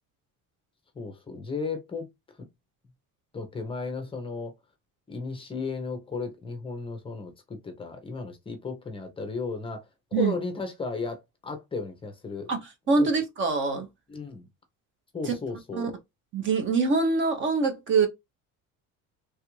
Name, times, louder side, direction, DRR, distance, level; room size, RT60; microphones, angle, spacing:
voice 1, 1.0-2.1 3.3-4.5 5.1-9.9 10.1-12.5 13.0-13.1 14.1-14.5 15.1-15.9, left 4 dB, 15° left, 0.5 m, -34 dB
voice 2, 12.9-13.9 15.3-15.4 15.7-15.9 16.3-18.1, right 4 dB, 35° right, 0.6 m, -24 dB
3.3 x 2.4 x 3.0 m
cardioid pair, 175°, 34 cm